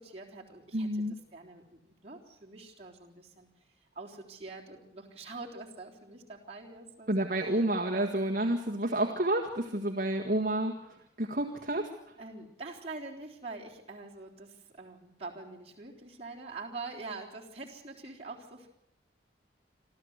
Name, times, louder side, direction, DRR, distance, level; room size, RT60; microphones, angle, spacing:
voice 1, 0.0-3.5 3.9-7.5 12.2-18.7, right 3 dB, 35° right, -2 dB, 3.7 m, -45 dB
voice 2, 0.7-1.1 7.1-10.7 11.2-11.9, right 1 dB, 50° right, 0 dB, 1.8 m, -29 dB
26.5 x 14.0 x 8.1 m, 0.80 s
head